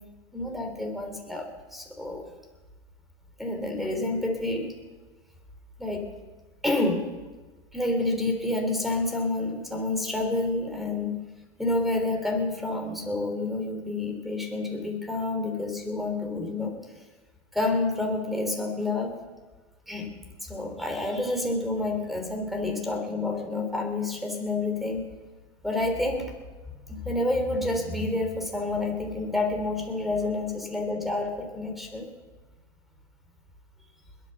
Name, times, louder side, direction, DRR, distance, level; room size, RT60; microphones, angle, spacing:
voice 1, 0.3-2.2 3.4-4.8 5.8-6.1 6.6-7.1 7.7-11.2 11.6-16.7 17.5-19.2 19.9-20.1 20.4-25.1 25.6-26.4 26.9-32.1, left 2 dB, ahead, 4 dB, 3.4 m, -29 dB
21.0 x 9.3 x 6.8 m, 1.2 s
hypercardioid pair, 120°, 35 cm